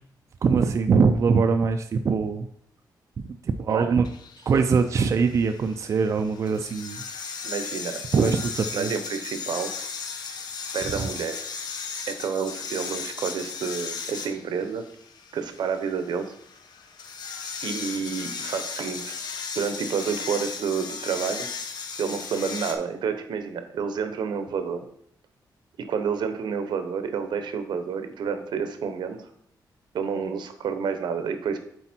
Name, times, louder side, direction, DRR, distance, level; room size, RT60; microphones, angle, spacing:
voice 1, 0.4-2.5 3.2-4.0 4.4-7.0 8.1-8.9 10.9-11.0, right 5 dB, 40° right, 7 dB, 0.4 m, -22 dB
sound 1, 4.0-22.7, left 5 dB, 65° left, 0.9 m, -36 dB
voice 2, 7.4-8.3 8.7-9.7 10.7-11.5 12.1-14.9 15.3-16.3 17.6-19.1 19.5-21.5 22.0-24.8 25.9-29.3 29.9-31.6, right 6 dB, 80° right, 8 dB, 0.9 m, -29 dB
8.0 x 4.4 x 4.3 m, 0.68 s
wide cardioid pair, 160°, 8 cm